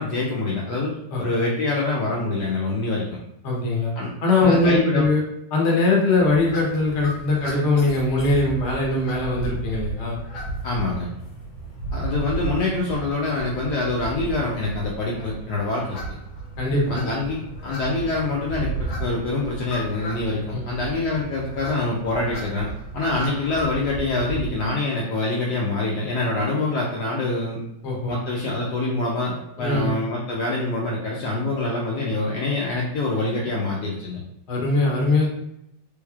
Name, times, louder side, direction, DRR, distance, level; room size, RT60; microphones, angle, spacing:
voice 1, 0.0-3.0 4.0-4.1 4.4-5.1 10.6-11.1 11.9-16.0 16.9-27.6 28.1-34.2, left 2 dB, 70° left, -4 dB, 1.1 m, -25 dB
voice 2, 3.4-3.9 4.2-5.2 5.5-10.2 16.6-17.0 20.5-20.6 27.8-28.1 29.6-29.9 34.5-35.3, left 2 dB, 50° left, -2 dB, 1.0 m, -21 dB
sound 1, 6.1-24.7, right 3 dB, 90° left, 1.5 m, -34 dB
3.4 x 3.2 x 2.3 m, 0.81 s
omnidirectional pair, 2.0 m